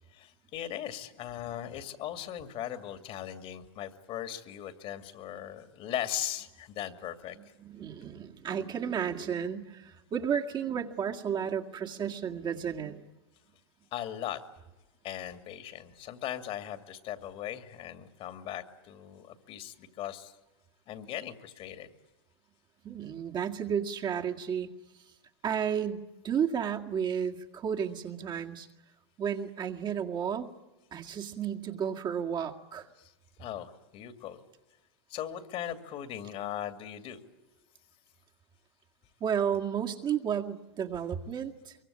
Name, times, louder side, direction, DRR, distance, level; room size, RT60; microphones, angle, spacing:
voice 1, 0.1-7.4 13.9-14.4 15.0-20.4 20.9-21.9 33.0-33.1 33.4-34.4 35.1-37.2, left 11 dB, 45° left, 9 dB, 2.5 m, -39 dB
voice 2, 7.6-13.0 22.8-24.7 25.4-28.7 29.2-30.5 30.9-32.9 39.2-41.8, right 8 dB, 35° right, 1 dB, 2.0 m, -32 dB
23.5 x 23.5 x 8.6 m, 1.0 s
hypercardioid pair, 105°, 14 cm